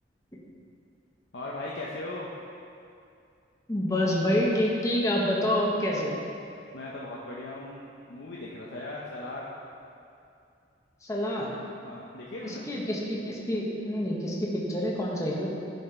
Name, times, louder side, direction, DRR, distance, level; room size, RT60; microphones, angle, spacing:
voice 1, 1.3-2.3 6.7-7.8 8.1-9.5 11.8-12.6, left 2 dB, 75° left, -5 dB, 0.8 m, -38 dB
voice 2, 3.7-6.2 11.0-11.6 12.4-15.5, left 1 dB, 15° left, -3 dB, 0.9 m, -27 dB
11.0 x 4.2 x 4.3 m, 2.5 s
head